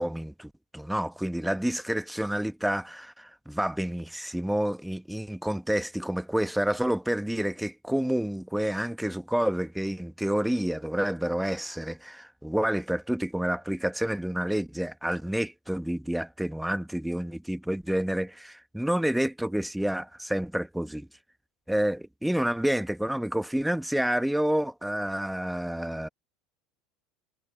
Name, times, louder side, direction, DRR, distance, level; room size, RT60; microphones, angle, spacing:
voice 1, 0.0-21.1 21.7-26.1, right 1 dB, 5° right, 1.2 m, -29 dB
hypercardioid pair, 75°, 0 cm